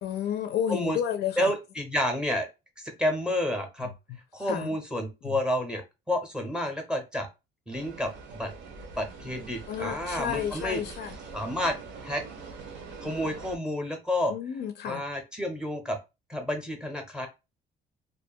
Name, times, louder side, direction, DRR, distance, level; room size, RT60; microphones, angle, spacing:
voice 1, 0.0-1.5 3.8-3.9 4.4-4.7 5.2-5.4 9.7-11.2 14.3-15.1, left 9 dB, 60° left, 0.4 m, -31 dB
voice 2, 1.4-2.5 2.8-3.9 4.3-5.8 6.1-7.3 7.7-8.5 9.0-10.8 11.3-11.8 12.0-12.2 13.0-14.3 14.8-16.0 16.3-17.3, left 1 dB, 5° right, 0.6 m, -30 dB
sound 1, 7.7-13.6, right 4 dB, 90° right, 0.8 m, -43 dB
2.5 x 2.2 x 2.7 m
cardioid pair, 170°, 19 cm